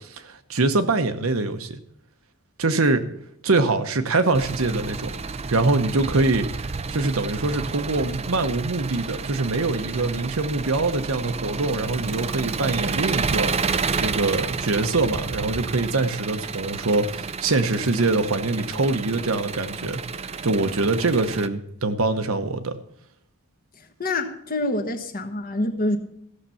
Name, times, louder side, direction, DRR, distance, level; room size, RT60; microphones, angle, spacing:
voice 1, 0.0-1.8 2.6-3.1 3.4-5.1 5.5-6.5 6.9-22.8, right 3 dB, 70° right, 1.0 m, -24 dB
Engine, 4.3-21.5, right 5 dB, 30° right, 0.5 m, -30 dB
voice 2, 24.0-26.0, left 1 dB, 40° left, 1.2 m, -26 dB
14.5 x 6.7 x 5.7 m
head